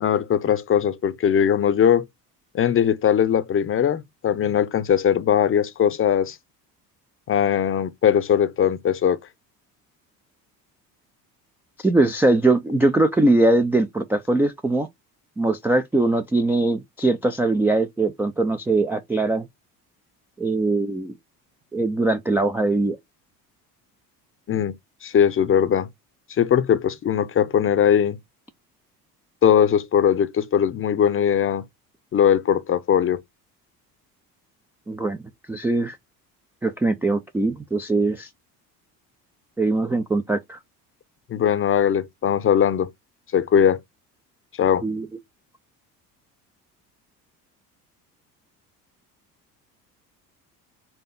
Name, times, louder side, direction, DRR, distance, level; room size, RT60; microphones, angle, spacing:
voice 1, 0.0-2.0 2.5-6.4 7.3-9.2 24.5-24.7 25.0-25.9 26.4-28.2 29.4-31.6 32.1-33.2 41.3-42.9 43.3-43.8 44.6-44.8, left 8 dB, 25° left, 0.6 m, -20 dB
voice 2, 11.8-14.9 15.4-19.5 20.4-21.1 21.7-23.0 34.9-35.2 35.5-36.0 36.6-38.3 39.6-40.6 44.8-45.1, right 2 dB, 5° right, 0.3 m, -21 dB
4.4 x 2.6 x 3.7 m
figure-of-eight pair, 60°, 49 cm